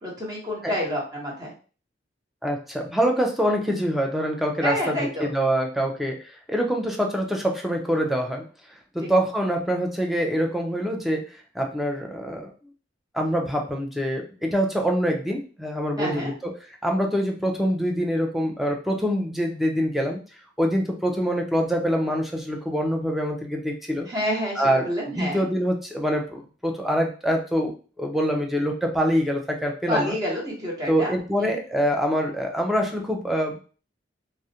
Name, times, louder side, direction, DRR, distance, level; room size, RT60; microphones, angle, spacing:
voice 1, 0.0-1.5 4.6-5.3 9.0-9.1 16.0-16.3 24.1-25.4 29.9-31.1 31.4-31.6, equal, 20° right, -4 dB, 0.9 m, -28 dB
voice 2, 2.4-8.4 8.9-11.2 11.5-12.5 13.1-16.5 16.8-20.2 20.6-24.1 24.6-24.9 25.1-30.2 30.9-33.6, equal, ahead, 1 dB, 0.4 m, -25 dB
2.4 x 2.0 x 2.7 m, 0.37 s
head